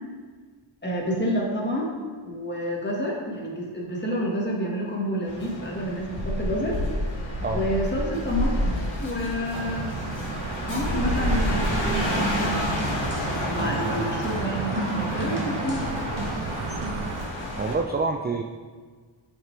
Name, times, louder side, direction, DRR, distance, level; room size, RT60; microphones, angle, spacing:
voice 1, 0.8-1.9 2.2-6.8 7.5-10.3 10.7-12.6 13.5-16.3, equal, 20° left, -3 dB, 1.7 m, -29 dB
sound 1, 5.3-17.7, left 1 dB, 65° left, 2.3 m, -29 dB
sound 2, 9.5-17.3, right 7 dB, 85° right, 0.6 m, -35 dB
sound 3, 12.0-17.0, equal, 40° right, 1.7 m, -34 dB
voice 2, 17.6-18.4, right 3 dB, 25° right, 4 dB, 0.3 m, -27 dB
8.9 x 5.8 x 3.3 m, 1.5 s
wide cardioid pair, 100°, 49 cm